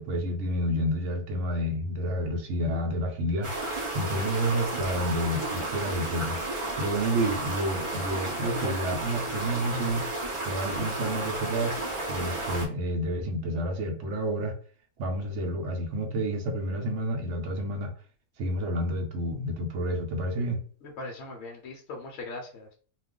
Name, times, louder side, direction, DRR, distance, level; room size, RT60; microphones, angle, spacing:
voice 1, 0.0-3.6 3.9-10.1 10.5-11.7 12.1-14.6 15.0-17.9 18.4-20.6, equal, 60° right, 4 dB, 0.9 m, -29 dB
sound 1, 3.4-12.7, right 2 dB, 30° right, 0.6 m, -32 dB
voice 2, 20.8-22.7, left 2 dB, 65° left, 1 dB, 0.7 m, -40 dB
2.4 x 2.3 x 3.6 m, 0.43 s
omnidirectional pair, 1.6 m